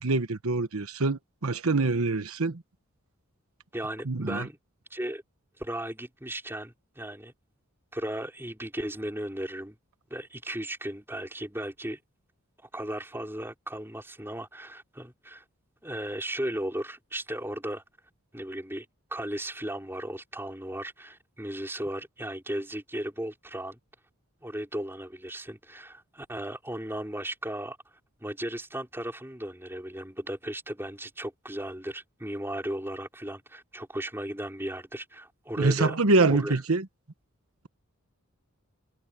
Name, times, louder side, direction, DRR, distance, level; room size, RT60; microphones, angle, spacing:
voice 1, 0.0-2.6 4.1-4.5 35.6-36.8, right 3 dB, 80° right, 1.1 m, -25 dB
voice 2, 3.7-4.6 4.9-5.2 5.6-7.3 7.9-9.8 10.1-12.0 12.7-15.4 15.8-17.8 18.3-18.9 19.1-23.8 24.4-27.8 28.2-36.0 36.3-36.6, right 1 dB, 10° right, 4.3 m, -36 dB
head